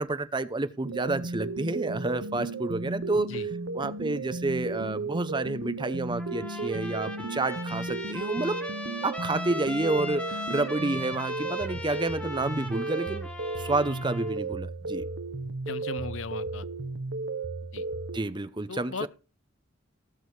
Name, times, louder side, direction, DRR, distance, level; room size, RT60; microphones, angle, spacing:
voice 1, 0.0-3.3 3.7-8.6 9.0-13.3 13.6-15.0 18.1-19.1, right 2 dB, 25° right, 0.7 m, -29 dB
sound 1, 0.8-18.2, right 3 dB, 65° right, 1.0 m, -34 dB
Trumpet, 6.2-14.4, left 1 dB, 5° left, 1.7 m, -38 dB
voice 2, 15.7-16.7 17.7-17.9 18.7-19.1, left 4 dB, 75° left, 0.8 m, -37 dB
19.0 x 6.3 x 4.8 m
head